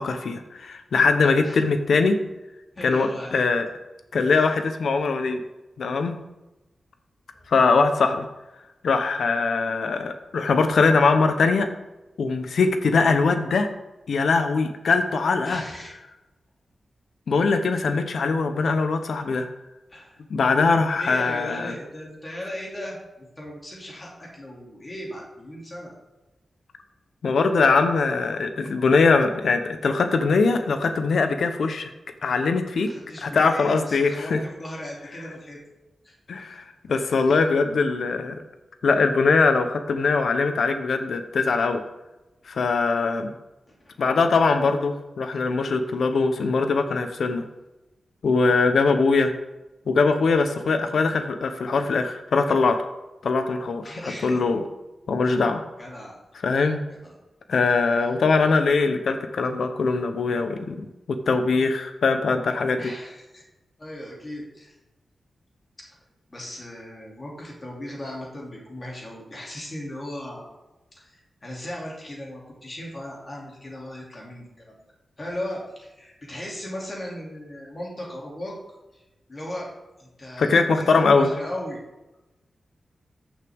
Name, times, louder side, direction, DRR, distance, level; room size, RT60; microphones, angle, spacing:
voice 1, 0.0-2.2 2.8-3.7 4.1-5.4 5.8-6.2 7.5-8.3 8.8-11.7 12.2-13.7 14.1-15.6 17.3-19.5 20.3-21.7 27.2-31.9 32.2-32.9 33.2-34.4 36.3-38.4 38.8-41.8 42.5-43.3 44.0-47.4 48.2-49.3 49.9-52.8 53.2-54.6 55.1-55.6 56.4-56.8 57.5-60.9 61.3-62.8 80.4-81.3, left 4 dB, 75° left, 7 dB, 0.9 m, -21 dB
voice 2, 2.7-3.5 4.3-4.6 7.3-7.5 15.4-15.9 19.9-20.2 21.0-25.9 32.9-35.6 36.0-36.1 37.2-37.4 43.7-43.9 53.8-54.4 55.2-55.4 55.8-56.1 56.9-57.1 62.8-63.4 63.8-64.7 66.3-70.5 70.9-74.8 75.2-78.5 78.9-79.0 79.3-79.7 80.0-81.8, left 1 dB, 25° left, -3 dB, 2.7 m, -37 dB
14.0 x 6.3 x 3.6 m, 1.0 s
wide cardioid pair, 155°, 0 cm